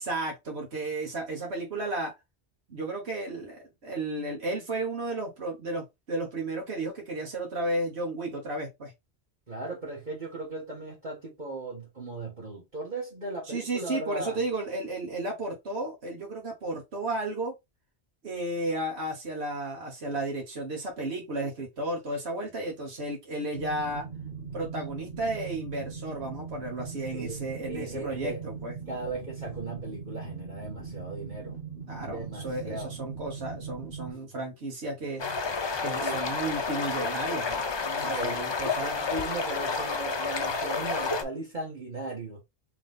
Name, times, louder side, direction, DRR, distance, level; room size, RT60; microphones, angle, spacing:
voice 1, 0.0-2.1 2.7-8.9 13.5-17.5 18.2-24.1 24.5-28.8 31.9-35.4 35.8-37.6 38.0-39.0, right 2 dB, 85° right, 1.6 m, -33 dB
voice 2, 9.5-14.4 27.1-28.4 28.9-31.6 32.0-32.9 34.1-34.2 36.0-36.2 37.8-38.5 38.8-42.4, right 2 dB, 45° right, 1.7 m, -37 dB
sound 1, 23.5-34.1, right 5 dB, 60° right, 1.5 m, -40 dB
sound 2, 35.2-41.2, left 4 dB, 40° left, 0.4 m, -30 dB
3.6 x 3.1 x 3.5 m
omnidirectional pair, 1.1 m